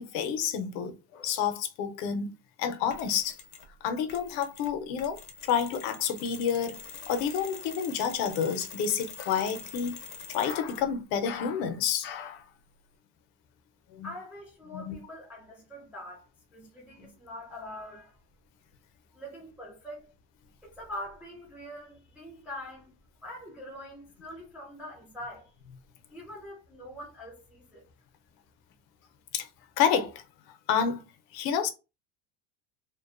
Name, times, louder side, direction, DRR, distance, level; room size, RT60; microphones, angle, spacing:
voice 1, 0.0-3.4 3.8-10.0 10.3-12.4 13.9-14.1 14.7-15.0 29.3-29.5 29.8-30.2 30.7-31.0 31.3-31.7, left 7 dB, 80° left, 0.7 m, -29 dB
Mechanisms, 2.9-3.7 4.1-11.0, left 6 dB, 45° left, 0.6 m, -45 dB
voice 2, 14.0-16.3 16.5-18.2 19.1-20.1 20.6-22.9 23.2-25.5 26.1-27.9, left 1 dB, 5° right, 0.3 m, -43 dB
2.5 x 2.2 x 2.4 m
cardioid pair, 145°, 48 cm